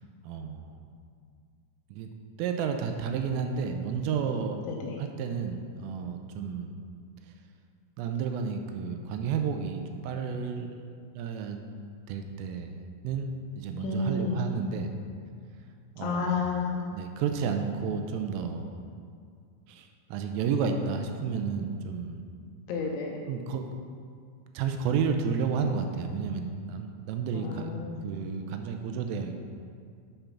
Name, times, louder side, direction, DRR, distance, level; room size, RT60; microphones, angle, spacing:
voice 1, 0.2-0.8 1.9-2.1 2.4-4.6 5.0-6.8 8.0-10.8 11.1-11.6 12.1-12.8 13.0-13.3 13.6-14.9 16.0-16.5 16.9-18.7 19.7-22.2 23.3-23.7 24.5-27.7 28.0-29.4, right 6 dB, 85° right, 5 dB, 3.1 m, -31 dB
voice 2, 4.7-5.0 13.8-14.4 16.0-16.8 22.7-23.2 27.3-28.1, left 4 dB, 80° left, 0 dB, 2.8 m, -31 dB
9.0 x 5.3 x 5.8 m, 2.2 s
omnidirectional pair, 6.0 m